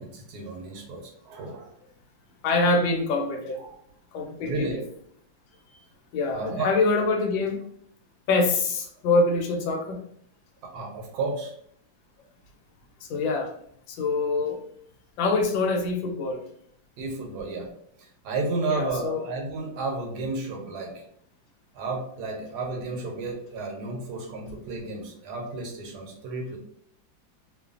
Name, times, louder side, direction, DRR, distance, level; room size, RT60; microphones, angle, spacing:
voice 1, 0.0-1.7 3.6-3.7 4.4-4.8 6.3-6.7 10.6-11.5 17.0-17.7 18.2-20.9 21.7-26.6, right 3 dB, 70° right, 1 dB, 1.0 m, -32 dB
voice 2, 2.4-3.6 4.1-4.8 5.7-5.8 6.1-7.6 8.3-10.0 13.0-13.5 13.9-14.6 15.2-16.4 18.7-19.2, left 3 dB, 80° left, 3 dB, 1.3 m, -25 dB
3.1 x 2.2 x 2.4 m, 0.65 s
omnidirectional pair, 2.1 m